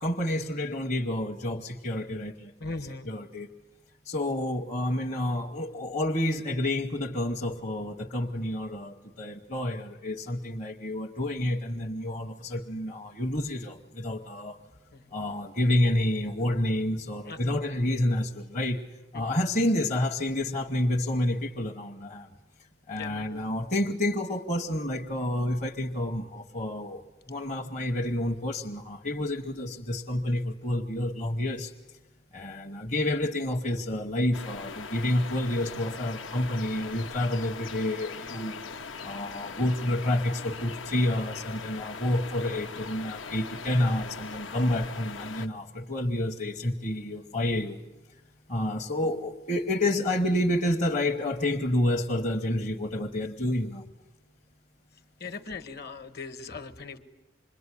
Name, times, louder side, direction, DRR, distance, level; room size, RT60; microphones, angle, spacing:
voice 1, 0.0-3.5 4.0-14.6 15.1-18.8 19.1-22.3 22.9-31.7 32.3-38.6 39.0-47.8 48.5-53.8, left 1 dB, 35° left, 0 dB, 1.0 m, -29 dB
voice 2, 2.6-3.1 14.9-15.2 17.2-17.6 19.1-19.4 22.9-23.4 55.2-57.0, left 4 dB, 55° left, 10 dB, 1.4 m, -40 dB
sound 1, 34.3-45.5, left 5 dB, 75° left, 1.0 m, -40 dB
26.5 x 22.0 x 9.9 m, 1.1 s
head